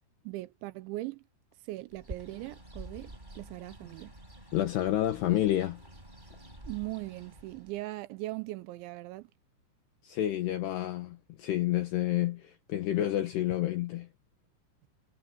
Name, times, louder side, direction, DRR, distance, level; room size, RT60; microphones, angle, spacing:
voice 1, 0.2-1.2 1.6-4.2 6.7-9.3, right 19 dB, 80° right, 2.9 m, -39 dB
Bird, 1.9-7.8, right 1 dB, 10° right, 5.4 m, -48 dB
voice 2, 4.5-5.8 10.0-14.1, left 13 dB, 70° left, 3.0 m, -29 dB
omnidirectional pair, 5.5 m